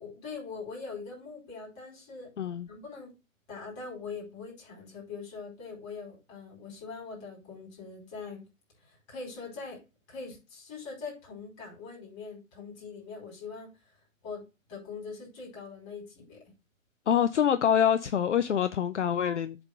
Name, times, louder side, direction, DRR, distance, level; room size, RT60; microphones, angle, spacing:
voice 1, 0.0-2.3 2.6-3.1 3.5-8.4 8.8-9.8 10.1-13.8 14.2-14.4 14.7-16.4, left 4 dB, 20° left, 4.9 m, -42 dB
voice 2, 2.4-2.7 17.1-19.6, left 9 dB, 60° left, 0.7 m, -25 dB
8.0 x 3.9 x 6.6 m
hypercardioid pair, 150°, 40 cm